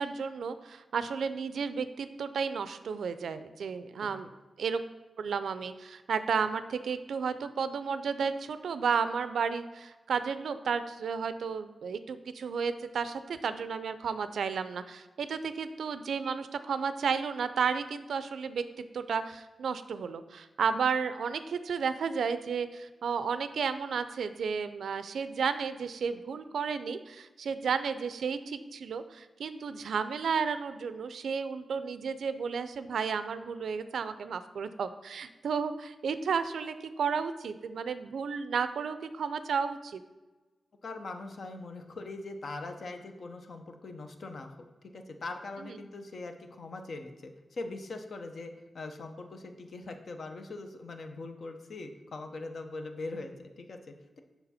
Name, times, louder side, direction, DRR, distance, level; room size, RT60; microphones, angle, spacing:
voice 1, 0.0-4.3 4.6-4.8 5.2-40.0 45.6-45.8, right 6 dB, 85° right, 12 dB, 0.4 m, -32 dB
voice 2, 40.8-44.5 44.8-54.2, left 3 dB, 60° left, 6 dB, 0.7 m, -41 dB
6.8 x 5.8 x 4.2 m, 1.2 s
wide cardioid pair, 110°, 0 cm